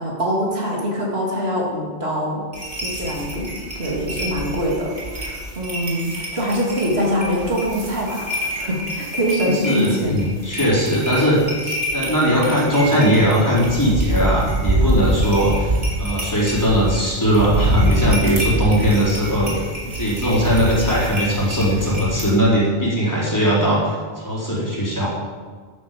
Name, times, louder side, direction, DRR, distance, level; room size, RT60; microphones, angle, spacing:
voice 1, 0.0-2.4 2.8-10.2, equal, 70° right, -4 dB, 3.3 m, -24 dB
sound 1, 2.5-22.3, right 1 dB, 55° right, 3.6 m, -26 dB
voice 2, 9.4-19.5 19.8-25.1, equal, 15° left, -7 dB, 4.4 m, -19 dB
11.5 x 9.6 x 7.8 m, 1.5 s
omnidirectional pair, 1.1 m